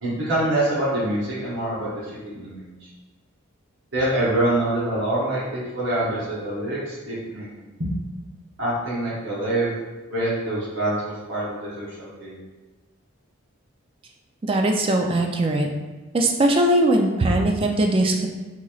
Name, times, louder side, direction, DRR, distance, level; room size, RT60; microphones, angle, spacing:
voice 1, 0.0-2.9 3.9-7.9 8.6-9.7 10.1-12.4, right 1 dB, 65° right, -9 dB, 0.9 m, -25 dB
voice 2, 14.4-15.7 16.1-18.3, right 1 dB, 25° right, 2 dB, 0.3 m, -20 dB
3.9 x 3.0 x 2.4 m, 1.2 s
head